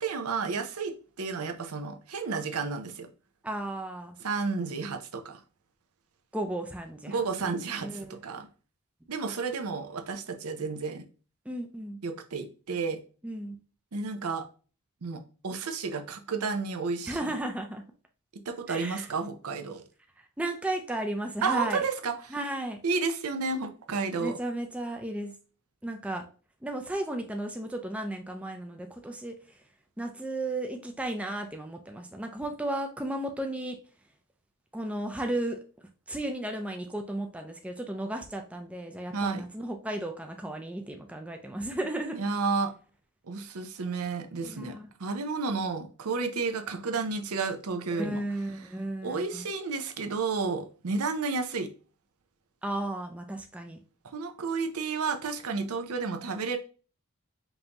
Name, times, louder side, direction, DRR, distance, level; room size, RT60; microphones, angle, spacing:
voice 1, 0.0-3.1 4.2-5.4 7.1-8.5 9.1-11.0 12.0-13.0 13.9-14.5 15.0-17.3 18.4-19.8 21.4-22.4 22.8-24.4 39.1-39.4 42.1-42.7 43.2-48.2 49.0-51.7 54.0-56.6, right 4 dB, 75° right, 0.6 m, -31 dB
voice 2, 3.4-4.2 6.3-7.5 7.8-8.2 11.5-12.0 13.2-13.6 17.1-17.8 18.7-19.1 20.4-21.8 22.3-22.8 24.2-25.3 25.8-26.3 26.6-29.6 30.0-33.8 34.7-35.6 36.1-42.2 44.4-44.9 47.9-49.5 52.6-53.8, right 1 dB, 5° right, 0.4 m, -34 dB
5.3 x 2.7 x 2.9 m
head